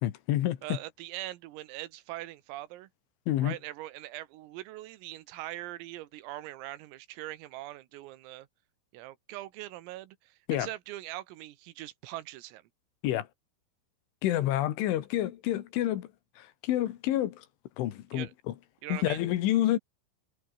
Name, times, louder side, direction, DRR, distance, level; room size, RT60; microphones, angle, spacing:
voice 1, 0.0-0.8 3.3-3.6 10.5-10.7 13.0-13.3 14.2-16.1 16.4-17.5 17.8-18.3 18.9-19.8, left 13 dB, 75° left, 3.8 m, -28 dB
voice 2, 0.6-2.9 3.4-8.5 8.9-12.6 18.1-18.3 18.8-19.3, right 16 dB, 85° right, 4.0 m, -42 dB
omnidirectional pair, 5.9 m